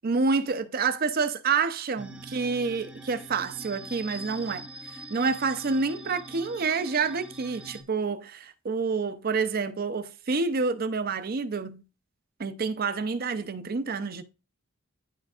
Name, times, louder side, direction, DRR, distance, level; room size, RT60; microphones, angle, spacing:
voice 1, 0.0-11.8 12.4-14.2, right 4 dB, 45° right, 0.5 m, -28 dB
sound 1, 2.0-7.8, right 1 dB, 5° right, 0.6 m, -43 dB
11.0 x 4.5 x 2.4 m
head